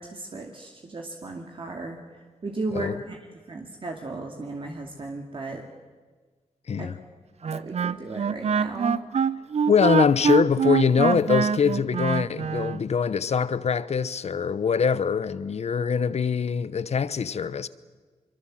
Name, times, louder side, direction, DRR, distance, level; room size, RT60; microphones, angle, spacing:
voice 1, 0.0-2.0 2.4-3.2 3.5-5.6 6.8-6.9 7.4-9.0, right 2 dB, 45° right, 2.4 m, -35 dB
voice 2, 6.7-7.0 9.7-17.7, left 6 dB, 60° left, 0.9 m, -23 dB
Wind instrument woodwind instrument, 7.4-12.8, right 7 dB, 60° right, 0.6 m, -24 dB
23.5 x 23.0 x 7.6 m
cardioid pair, 80°, 12 cm